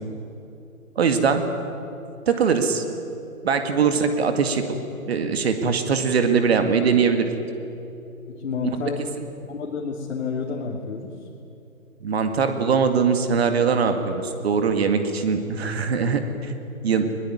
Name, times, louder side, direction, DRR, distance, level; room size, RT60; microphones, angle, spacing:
voice 1, 1.0-1.4 2.3-2.8 3.4-4.6 5.1-7.3 8.9-9.0 12.0-16.5 16.8-17.2, right 5 dB, 45° right, 7 dB, 2.2 m, -21 dB
voice 2, 8.3-9.1 9.5-11.1, left 5 dB, 55° left, -2 dB, 3.0 m, -30 dB
22.0 x 20.0 x 9.4 m, 2.9 s
hypercardioid pair, 150°, 44 cm